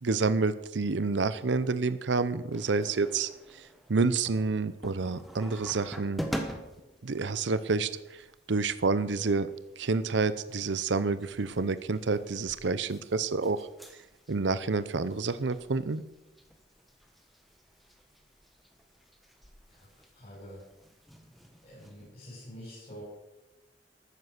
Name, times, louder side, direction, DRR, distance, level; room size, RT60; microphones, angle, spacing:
voice 1, 0.0-3.6 3.9-6.2 7.0-9.5 9.8-13.7 14.3-16.0, right 4 dB, 80° right, 14 dB, 0.7 m, -29 dB
sound 1, 2.5-22.1, equal, ahead, 1.4 m, -46 dB
voice 2, 19.7-20.6 21.6-23.0, equal, 35° left, -8 dB, 6.4 m, -47 dB
13.5 x 9.4 x 6.6 m, 0.99 s
head